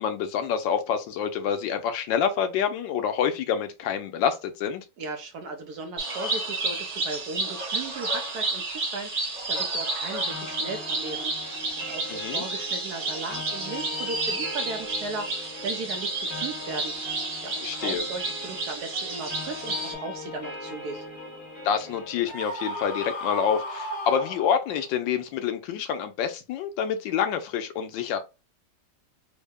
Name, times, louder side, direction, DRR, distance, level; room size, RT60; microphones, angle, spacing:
voice 1, 0.0-4.8 12.1-12.4 17.6-18.0 21.6-28.2, left 8 dB, 85° left, 1.4 m, -27 dB
voice 2, 5.0-16.9 17.4-21.0, right 3 dB, 70° right, 1.0 m, -37 dB
sound 1, 6.0-19.9, right 2 dB, 45° right, 1.3 m, -31 dB
sound 2, 10.3-22.3, left 2 dB, 10° left, 1.0 m, -40 dB
Screaming, 22.2-24.9, equal, 55° left, 1.7 m, -35 dB
3.7 x 2.1 x 3.5 m
omnidirectional pair, 2.0 m